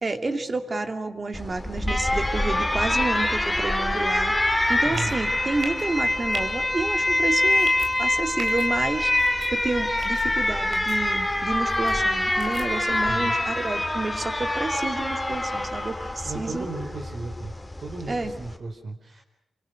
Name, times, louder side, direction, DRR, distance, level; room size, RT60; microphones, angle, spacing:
voice 1, 0.0-7.7 8.0-16.7 18.1-18.3, right 3 dB, 30° right, 6 dB, 2.4 m, -30 dB
Alarm, 1.3-18.6, left 1 dB, 10° left, 2.8 m, -25 dB
voice 2, 4.8-5.1 13.1-13.3 16.2-17.5 17.8-19.2, right 3 dB, 50° right, 2 dB, 4.7 m, -35 dB
sound 1, 4.9-5.2 5.6-5.8 6.3-6.4 7.5-7.9 8.4-8.7 9.1-9.5 10.0-10.2 10.7-11.0 11.7-11.9 12.4-12.7, right 4 dB, 75° right, 3.8 m, -38 dB
28.5 x 24.5 x 6.4 m, 0.88 s
wide cardioid pair, 105°, 0 cm